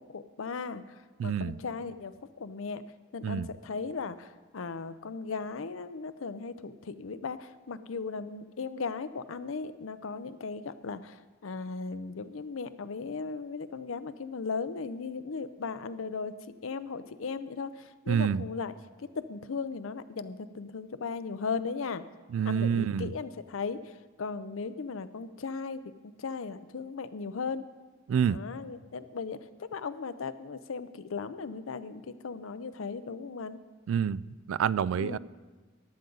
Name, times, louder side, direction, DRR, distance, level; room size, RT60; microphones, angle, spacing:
voice 1, 0.1-0.8 1.2-2.8 3.1-11.2 11.4-16.3 16.6-18.7 19.0-22.0 22.5-23.8 24.2-25.8 26.2-27.6 28.2-33.6 35.0-35.2, left 4 dB, 80° left, 12 dB, 0.6 m, -37 dB
voice 2, 1.2-1.6 3.2-3.5 18.1-18.4 22.3-23.1 28.1-28.4 33.9-35.2, right 8 dB, 80° right, 20 dB, 0.3 m, -28 dB
14.5 x 10.5 x 3.9 m, 1.3 s
head